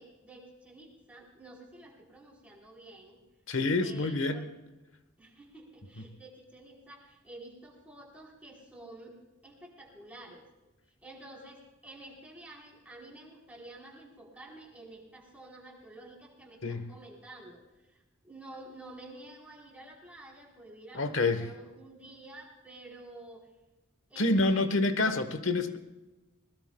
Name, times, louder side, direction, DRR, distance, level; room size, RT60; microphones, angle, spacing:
voice 1, 0.0-3.2 3.8-4.5 5.2-9.2 9.4-10.4 11.0-23.5 24.1-25.7, right 2 dB, 5° right, -3 dB, 4.0 m, -50 dB
voice 2, 3.5-4.4 16.6-16.8 20.9-21.5 24.2-25.8, left 2 dB, 65° left, 10 dB, 1.2 m, -27 dB
20.5 x 20.5 x 2.3 m, 1.1 s
head